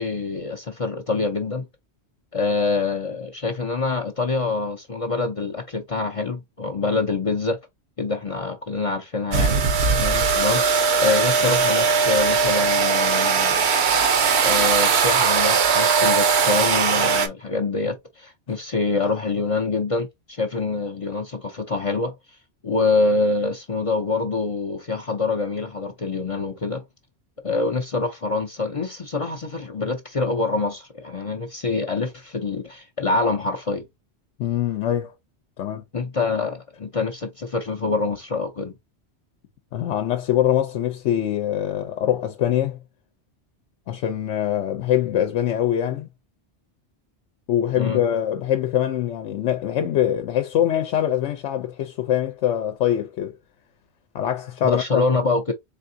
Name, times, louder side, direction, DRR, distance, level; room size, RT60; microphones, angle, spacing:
voice 1, 0.0-1.6 2.3-7.6 8.0-9.7 10.3-10.6 11.0-13.7 14.4-22.2 22.6-26.8 27.4-33.9 35.9-38.7 47.8-48.0 54.6-55.5, left 3 dB, 45° left, 0.5 m, -25 dB
sound 1, 9.3-17.3, right 5 dB, 70° right, 1.0 m, -19 dB
voice 2, 34.4-35.1 35.6-35.8 39.7-42.8 43.9-46.1 47.5-53.4 54.1-55.0, left 11 dB, 90° left, 1.0 m, -23 dB
4.1 x 3.5 x 2.6 m
omnidirectional pair, 1.2 m